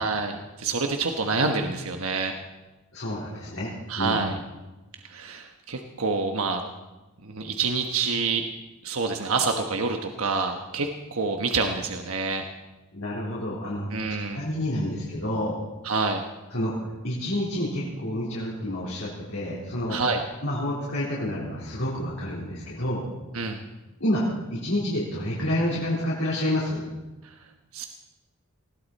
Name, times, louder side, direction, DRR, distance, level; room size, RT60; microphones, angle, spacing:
voice 1, 0.0-2.3 3.9-4.3 5.0-6.6 7.2-8.4 8.8-12.4 13.9-14.5 15.8-16.2 19.9-20.2 23.3-23.6 27.2-27.3 27.7-27.9, right 4 dB, 75° right, 4 dB, 1.3 m, -27 dB
voice 2, 2.9-4.2 12.9-15.6 16.5-20.0 20.4-23.1 24.0-24.2 24.5-26.8, left 1 dB, 65° left, -7 dB, 3.9 m, -29 dB
20.5 x 16.5 x 4.2 m, 1.1 s
head